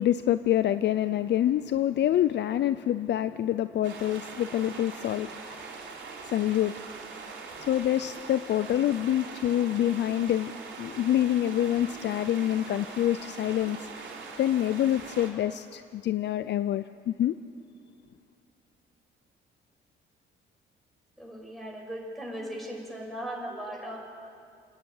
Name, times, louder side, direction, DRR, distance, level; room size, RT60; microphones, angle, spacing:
voice 1, 0.0-5.6 6.2-6.7 7.6-10.5 10.8-14.1 14.4-17.4, left 12 dB, 60° left, 13 dB, 0.5 m, -26 dB
sound 1, 3.8-15.3, right 4 dB, 70° right, 4.0 m, -42 dB
voice 2, 21.2-24.0, right 1 dB, ahead, -1 dB, 5.9 m, -38 dB
28.0 x 10.5 x 9.4 m, 2.5 s
cardioid pair, 90°, 20 cm